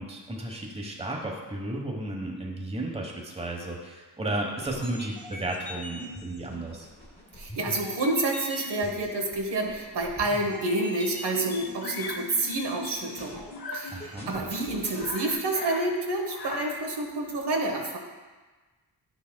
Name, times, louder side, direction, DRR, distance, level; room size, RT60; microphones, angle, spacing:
voice 1, 0.0-6.9 13.9-14.5, right 1 dB, 15° right, 0 dB, 1.2 m, -34 dB
sound 1, 4.7-15.3, left 2 dB, 15° left, 1.7 m, -42 dB
voice 2, 7.4-13.4 13.7-18.0, right 2 dB, 70° right, 1 dB, 1.0 m, -28 dB
Bird vocalization bird call bird song, 11.8-12.3 13.5-13.9 14.4-14.5 14.8-16.0 16.2-16.9, left 4 dB, 55° left, 0.9 m, -39 dB
9.1 x 6.1 x 2.2 m, 1.3 s
cardioid pair, 75°, 42 cm